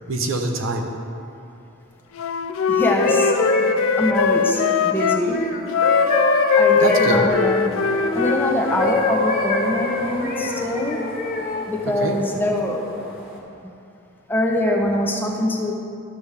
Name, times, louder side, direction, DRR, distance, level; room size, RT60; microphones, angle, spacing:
voice 1, 0.1-1.2 6.7-7.4 11.8-12.3, right 2 dB, 75° right, 3 dB, 0.8 m, -25 dB
Wind instrument woodwind instrument, 2.1-5.2 5.7-9.0, left 6 dB, 75° left, 0.4 m, -21 dB
voice 2, 2.7-3.3 3.6-5.4 6.5-7.9 8.1-11.0 11.7-12.9 14.3-15.7, left 1 dB, 10° left, 0 dB, 0.7 m, -23 dB
sound 1, 2.8-8.4 8.8-11.7 12.3-12.6, left 2 dB, 40° left, 0.9 m, -25 dB
sound 2, 7.5-13.4, equal, 10° right, 1.3 m, -39 dB
12.0 x 6.9 x 3.4 m, 2.6 s
head